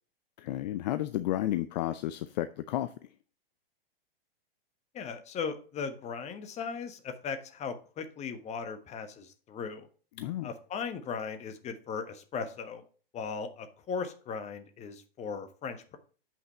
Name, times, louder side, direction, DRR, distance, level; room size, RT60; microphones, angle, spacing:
voice 1, 0.4-2.9 10.2-10.5, left 13 dB, 45° left, 0.6 m, -32 dB
voice 2, 4.9-9.9 10.4-12.8 13.1-16.0, left 5 dB, 20° left, 1.2 m, -38 dB
7.9 x 5.9 x 4.2 m
hypercardioid pair, 110°, 30 cm